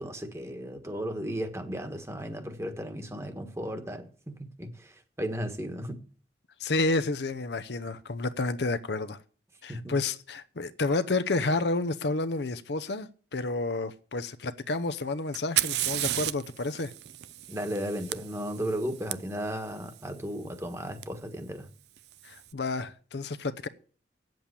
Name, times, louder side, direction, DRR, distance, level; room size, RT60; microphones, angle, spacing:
voice 1, 0.0-4.9 5.2-6.0 9.7-9.9 17.5-21.7, equal, 15° right, 1.4 m, -35 dB
voice 2, 6.6-9.2 9.6-16.9 22.2-23.7, left 3 dB, 75° left, 0.7 m, -30 dB
Fire, 15.3-19.1 21.0-21.1 22.0-22.4, right 13 dB, 70° right, 0.5 m, -33 dB
8.9 x 7.8 x 8.4 m
head